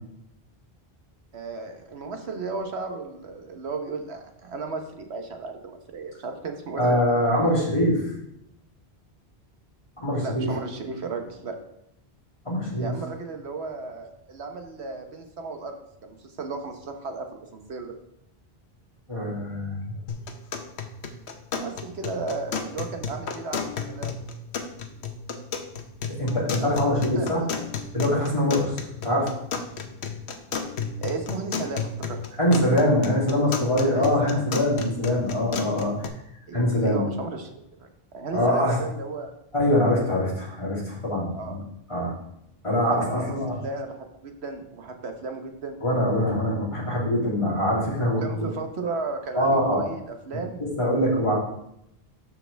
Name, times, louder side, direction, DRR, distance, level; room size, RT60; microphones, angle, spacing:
voice 1, 1.3-7.0 10.2-11.6 12.8-17.9 21.5-23.6 23.9-24.1 26.6-27.4 31.0-32.2 33.9-34.5 36.5-39.3 41.3-41.6 42.9-45.8 48.2-50.6, right 4 dB, 85° right, 5 dB, 1.3 m, -34 dB
voice 2, 6.8-8.0 10.0-10.5 12.4-12.9 19.1-19.9 26.1-27.4 27.9-29.3 32.4-36.1 36.5-37.0 38.3-38.8 39.5-41.6 41.9-42.1 42.6-43.6 45.8-48.4 49.3-49.8 50.6-51.3, left 1 dB, 30° left, -6 dB, 3.2 m, -23 dB
sound 1, 20.1-36.1, left 5 dB, 90° left, 1.1 m, -33 dB
12.5 x 4.9 x 3.4 m, 0.78 s
omnidirectional pair, 1.1 m